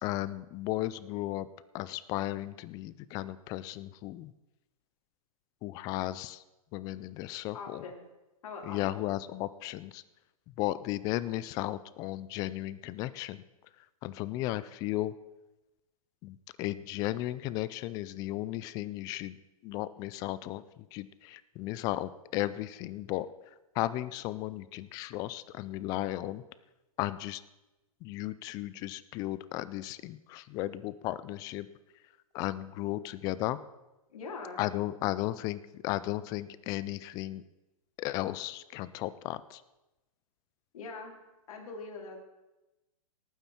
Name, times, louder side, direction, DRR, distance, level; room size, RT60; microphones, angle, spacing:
voice 1, 0.0-1.5 1.7-4.3 5.6-6.4 6.7-7.8 8.6-10.0 10.6-13.4 14.0-15.1 16.2-19.4 19.6-20.6 20.9-23.3 23.8-26.4 27.0-27.4 28.0-31.7 32.3-33.6 34.6-37.4 38.0-39.6, left 16 dB, 20° left, 16 dB, 0.3 m, -35 dB
voice 2, 7.5-8.0 8.4-9.0 34.1-34.6 40.7-41.2 41.5-42.2, left 4 dB, 65° left, -1 dB, 3.7 m, -42 dB
18.5 x 9.2 x 4.4 m, 1.0 s
hypercardioid pair, 150°, 19 cm